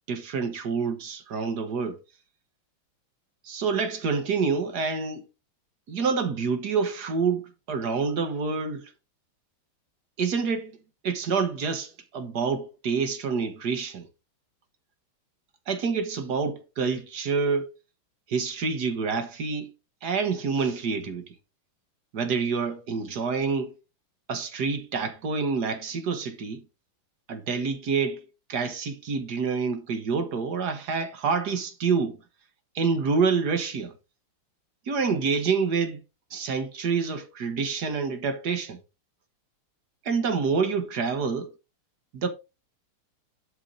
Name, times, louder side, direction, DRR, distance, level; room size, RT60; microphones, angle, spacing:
voice 1, 0.1-2.0 3.4-5.3 5.9-8.9 10.2-10.7 11.0-14.1 15.7-17.7 18.3-19.7 20.0-21.3 22.1-23.7 24.3-26.6 27.3-28.2 28.5-32.2 32.7-33.9 34.9-36.0 36.3-38.8 40.0-41.5 42.1-42.3, right 5 dB, 50° right, 1.7 m, -27 dB
11.5 x 4.8 x 3.8 m
omnidirectional pair, 2.4 m